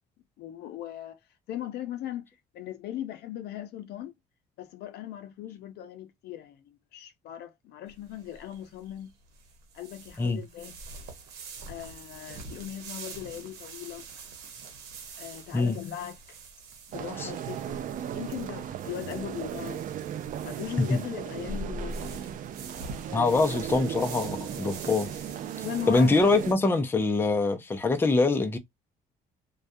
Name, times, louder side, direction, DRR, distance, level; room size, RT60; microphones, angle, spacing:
voice 1, 0.4-1.2 1.5-2.3 2.5-4.1 4.6-9.1 9.7-10.8 11.7-14.1 15.2-16.4 16.9-17.8 18.1-19.8 20.4-22.5 25.6-26.1, left 12 dB, 75° left, 0.6 m, -39 dB
sound 1, 7.9-26.5, right 3 dB, 85° right, 0.9 m, -44 dB
sound 2, 16.9-26.5, right 10 dB, 50° right, 0.4 m, -36 dB
voice 2, 23.1-25.1 25.9-28.6, left 3 dB, 15° left, 0.4 m, -24 dB
2.3 x 2.2 x 2.6 m
cardioid pair, 110°, 17 cm